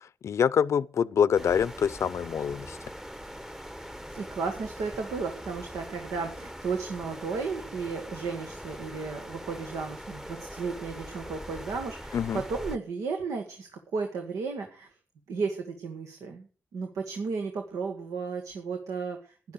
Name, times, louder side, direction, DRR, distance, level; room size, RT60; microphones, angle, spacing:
voice 1, 0.0-2.8 12.1-12.4, left 7 dB, 70° left, 0.6 m, -26 dB
sound 1, 1.3-12.8, equal, 5° right, 1.0 m, -42 dB
voice 2, 4.1-14.9 15.3-16.5 16.7-19.5, right 4 dB, 85° right, 1.6 m, -34 dB
12.0 x 10.5 x 6.6 m
supercardioid pair, 45°, 5 cm